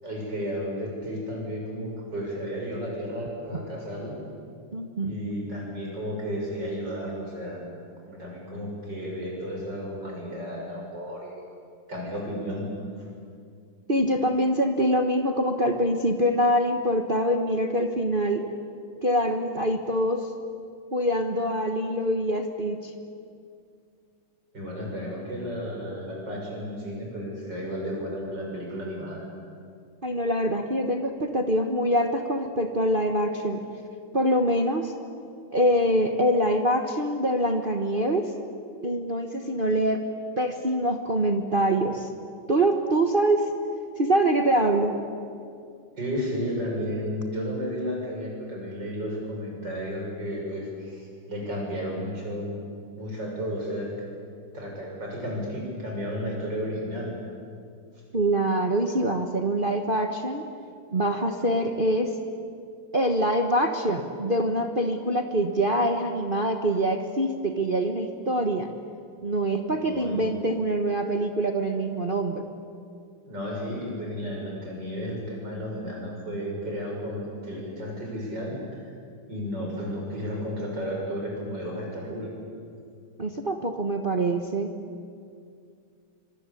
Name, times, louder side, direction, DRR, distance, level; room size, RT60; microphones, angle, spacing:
voice 1, 0.0-4.2 5.0-7.6 8.0-11.4 11.9-12.7 24.5-29.3 46.0-52.6 52.9-53.9 54.5-57.1 69.6-70.2 73.2-78.6 79.3-82.3, equal, 55° right, -1 dB, 7.6 m, -33 dB
voice 2, 4.7-5.1 13.9-18.5 19.0-20.3 20.9-22.9 30.0-33.6 34.1-34.9 35.5-38.3 38.8-40.0 40.4-42.1 42.5-43.5 44.0-44.9 58.1-60.4 60.9-62.1 62.9-68.7 69.2-72.4 83.2-84.7, right 1 dB, 30° right, 4 dB, 1.2 m, -24 dB
25.5 x 24.5 x 8.5 m, 2.3 s
omnidirectional pair, 2.3 m